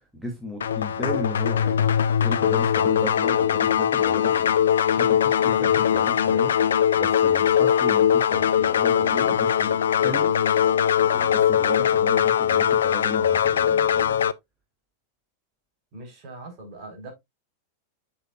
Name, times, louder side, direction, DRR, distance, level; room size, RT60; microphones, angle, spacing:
voice 1, 0.1-1.9 2.2-4.5 4.9-10.3 11.0-14.2, left 1 dB, ahead, 2.6 m, -35 dB
sound 1, 0.6-14.3, left 9 dB, 65° left, 0.5 m, -21 dB
voice 2, 15.9-17.1, right 2 dB, 35° right, 4.4 m, -41 dB
8.1 x 7.1 x 2.4 m
figure-of-eight pair, 90°, 0 cm